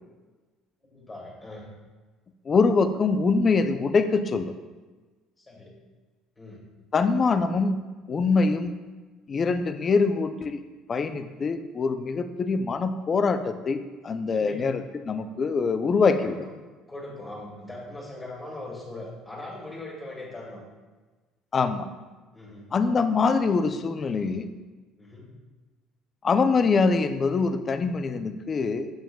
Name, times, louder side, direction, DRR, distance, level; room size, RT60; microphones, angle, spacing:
voice 1, 0.8-1.6 5.4-5.7 6.4-6.6 12.3-12.4 14.3-14.8 16.2-16.4 16.9-20.6 22.3-22.7 25.0-25.3, left 2 dB, 15° left, -4 dB, 1.9 m, -40 dB
voice 2, 2.5-4.5 6.9-7.8 8.1-8.7 9.3-10.6 10.9-16.4 21.5-21.9 22.7-24.5 26.2-28.9, left 4 dB, 30° left, 9 dB, 0.4 m, -24 dB
7.7 x 6.9 x 2.3 m, 1.3 s
cardioid pair, 130°, 0 cm